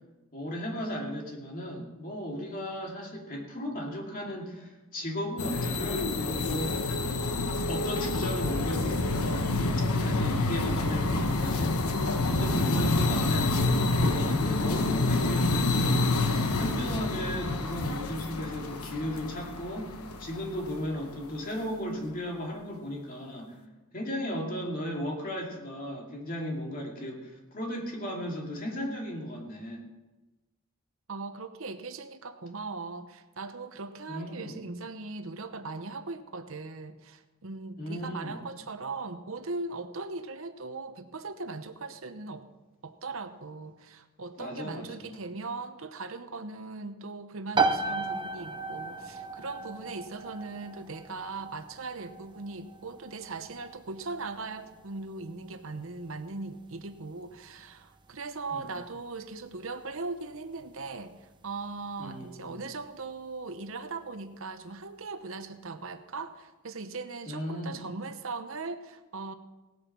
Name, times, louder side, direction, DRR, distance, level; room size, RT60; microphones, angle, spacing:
voice 1, 0.3-6.8 7.7-9.1 10.0-11.9 12.2-23.6 23.9-29.8 34.1-34.6 37.8-38.4 44.4-45.2 58.5-58.7 62.0-62.6 67.3-67.8, equal, 40° left, 0 dB, 2.7 m, -35 dB
sound 1, 5.4-20.7, left 2 dB, 85° left, 1.2 m, -28 dB
voice 2, 31.1-42.4 42.8-69.3, right 3 dB, 65° right, 9 dB, 0.9 m, -39 dB
sound 2, 47.5-62.0, right 4 dB, 20° right, 0.7 m, -36 dB
18.0 x 8.7 x 6.0 m, 1.1 s
head